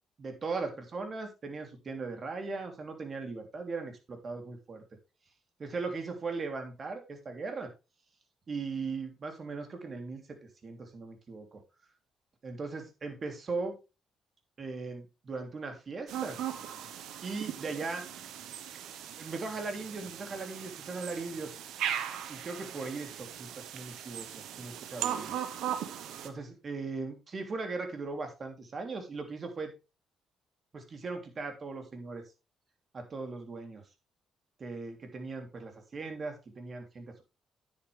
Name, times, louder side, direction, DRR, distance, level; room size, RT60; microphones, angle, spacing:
voice 1, 0.2-4.8 5.6-7.7 8.5-11.6 12.4-13.8 14.6-16.4 17.2-18.1 19.2-21.6 22.3-25.3 26.2-29.7 30.7-32.2 32.9-33.8 34.6-37.2, right 4 dB, 40° right, 5 dB, 3.1 m, -38 dB
sound 1, 16.1-26.3, right 10 dB, 85° right, 1.2 m, -38 dB
9.7 x 8.6 x 3.3 m, 0.27 s
cardioid pair, 90°, 0 cm